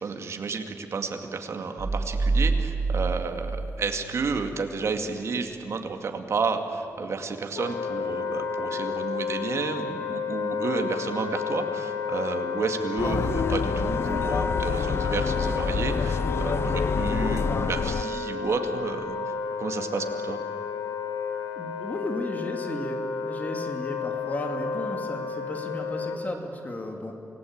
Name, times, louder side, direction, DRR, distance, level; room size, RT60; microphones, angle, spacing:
voice 1, 0.0-20.4, right 4 dB, 55° right, 5 dB, 2.3 m, -31 dB
sound 1, 1.8-4.5, right 3 dB, 30° right, 2.1 m, -27 dB
Wind instrument woodwind instrument, 7.5-26.2, left 5 dB, 85° left, 3.6 m, -31 dB
sound 2, 13.0-18.0, left 5 dB, 45° left, 0.6 m, -27 dB
voice 2, 21.6-23.0 23.2-27.1, left 1 dB, 30° left, 3 dB, 2.6 m, -34 dB
28.5 x 18.5 x 8.8 m, 2.9 s
wide cardioid pair, 150°, 6 cm